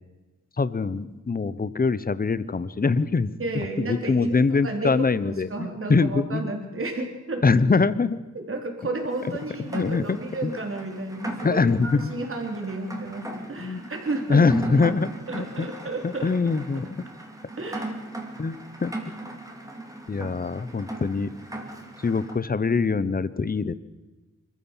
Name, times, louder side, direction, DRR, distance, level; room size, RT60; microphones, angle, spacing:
voice 1, 0.6-3.3 3.9-6.5 7.4-8.2 9.7-10.5 11.4-12.1 13.6-13.8 14.3-15.7 16.0-17.0 18.4-18.9 20.1-21.3 22.0-23.7, left 4 dB, 30° left, 17 dB, 0.8 m, -23 dB
voice 2, 3.4-7.5 8.3-14.8 15.3-16.3 16.7-16.8 17.6-17.9 20.2-20.3, right 2 dB, 45° right, 3 dB, 3.6 m, -32 dB
Rain, 9.1-22.4, right 1 dB, 10° right, 2.7 m, -38 dB
25.5 x 14.5 x 7.3 m, 1.2 s
wide cardioid pair, 165°, 30 cm